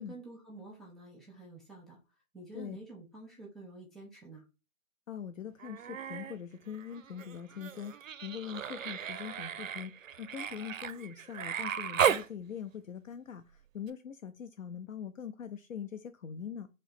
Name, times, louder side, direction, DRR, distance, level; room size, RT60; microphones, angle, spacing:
voice 1, 0.0-2.0 2.3-4.4, right 2 dB, ahead, 0.4 m, -49 dB
voice 2, 5.1-16.7, left 8 dB, 70° left, 0.5 m, -42 dB
Human voice, 5.6-6.4 6.7-12.3 13.9-14.0, right 8 dB, 70° right, 0.5 m, -35 dB
3.1 x 2.9 x 4.2 m
hypercardioid pair, 160°, 42 cm